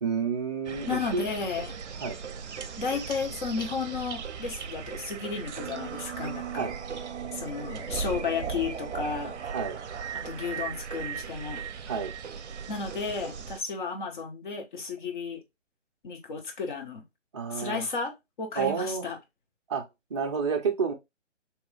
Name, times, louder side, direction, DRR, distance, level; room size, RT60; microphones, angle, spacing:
voice 1, 0.0-1.3 2.0-2.2 6.5-6.7 9.5-9.8 11.9-12.1 17.3-17.9 18.6-19.1 19.7-19.8 20.1-20.9, right 5 dB, 25° right, 0.5 m, -29 dB
sound 1, 0.6-13.6, right 7 dB, 65° right, 0.6 m, -37 dB
voice 2, 0.9-1.7 2.8-6.7 7.3-9.5 10.1-11.6 12.7-15.4 16.0-17.1 17.5-19.2, left 5 dB, 40° left, 1.1 m, -33 dB
3.5 x 3.1 x 3.1 m
figure-of-eight pair, 145°, 37 cm